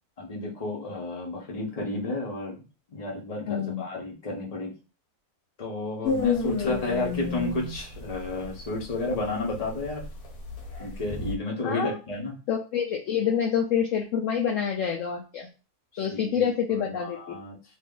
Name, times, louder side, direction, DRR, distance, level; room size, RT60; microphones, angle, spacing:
voice 1, 0.2-2.6 2.9-4.7 5.6-10.0 10.8-12.3 15.9-16.4 16.9-17.6, left 2 dB, 30° left, -2 dB, 1.0 m, -32 dB
voice 2, 3.5-3.8 6.7-7.0 11.6-12.0 12.5-15.5 16.0-17.2, left 8 dB, 70° left, 2 dB, 0.8 m, -27 dB
sound 1, 6.0-11.3, left 4 dB, 85° left, 1.3 m, -30 dB
2.7 x 2.6 x 3.7 m, 0.32 s
omnidirectional pair, 1.6 m